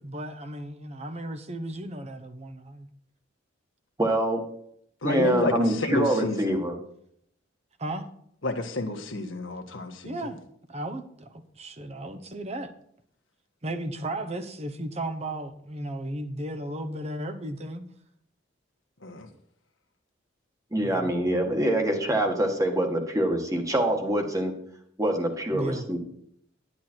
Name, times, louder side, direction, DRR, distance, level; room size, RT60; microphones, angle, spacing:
voice 1, 0.0-2.9 7.8-8.1 10.0-10.4 10.7-12.7 13.6-17.8 20.8-21.1 25.5-25.9, right 1 dB, 35° right, 7 dB, 1.1 m, -35 dB
voice 2, 4.0-4.4 5.0-6.7 20.7-24.5 25.0-26.0, right 1 dB, 15° right, 3 dB, 1.8 m, -25 dB
voice 3, 5.0-6.6 8.4-10.2 19.0-19.3, left 2 dB, 90° left, 6 dB, 1.5 m, -30 dB
10.5 x 10.5 x 4.5 m, 0.69 s
head